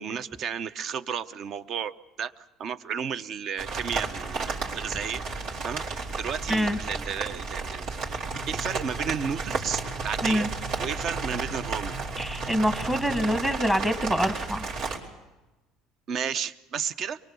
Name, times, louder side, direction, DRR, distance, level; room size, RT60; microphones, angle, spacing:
voice 1, 0.0-5.2 5.6-7.9 8.5-10.5 10.8-12.0 16.1-17.2, right 7 dB, 45° right, 14 dB, 0.8 m, -33 dB
sound 1, 3.6-15.0, right 4 dB, 70° right, 4.2 m, -33 dB
sound 2, 8.3-13.5, right 1 dB, 90° right, 1.5 m, -42 dB
voice 2, 12.2-14.7, equal, 10° right, 8 dB, 1.3 m, -25 dB
24.0 x 23.0 x 7.0 m, 1.1 s
cardioid pair, 130°, 0 cm